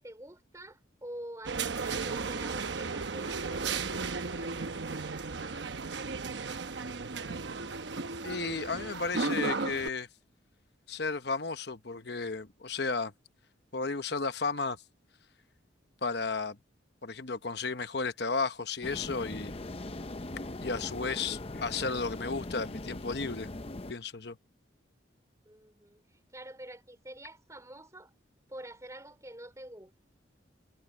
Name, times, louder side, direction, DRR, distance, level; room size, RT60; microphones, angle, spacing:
voice 1, 0.0-4.7 25.5-26.0 26.3-28.1 28.5-29.9, right 1 dB, 15° right, 3.8 m, -47 dB
sound 1, 1.4-9.9, right 4 dB, 65° right, 0.9 m, -35 dB
voice 2, 8.2-10.1 10.9-13.1 13.7-14.8 16.0-16.6 17.0-19.5 20.6-23.5 23.9-24.4, left 4 dB, 55° left, 1.0 m, -33 dB
sound 2, 18.8-23.9, left 2 dB, 30° left, 0.7 m, -40 dB
head